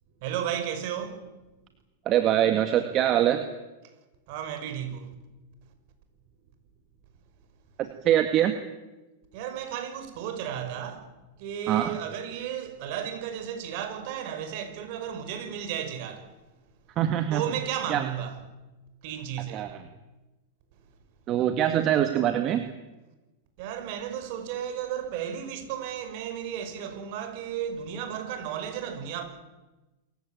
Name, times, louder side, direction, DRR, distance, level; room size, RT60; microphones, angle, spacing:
voice 1, 0.2-1.3 4.3-5.1 9.3-11.1 11.4-16.4 17.3-18.4 19.0-19.7 23.6-29.2, right 9 dB, 55° right, 5.7 m, -34 dB
voice 2, 2.1-3.4 7.8-8.6 11.7-12.0 17.0-17.4 17.9-18.1 19.5-19.8 21.3-22.7, right 11 dB, 40° right, 1.9 m, -23 dB
27.5 x 15.5 x 8.9 m
hypercardioid pair, 115°, 0 cm